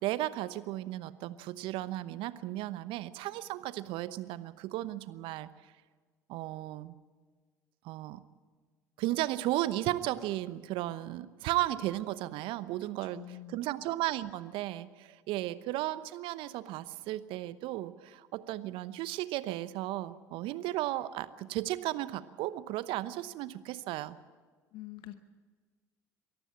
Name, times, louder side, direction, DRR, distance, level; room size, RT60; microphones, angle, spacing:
voice 1, 0.0-5.5 6.3-6.9 7.8-8.2 9.0-13.2 13.5-24.1, right 15 dB, 60° right, 15 dB, 0.9 m, -35 dB
voice 2, 12.8-13.6 20.4-20.7 24.7-25.2, left 13 dB, 60° left, 10 dB, 1.0 m, -47 dB
23.0 x 14.5 x 8.7 m, 1.5 s
hypercardioid pair, 60°, 10 cm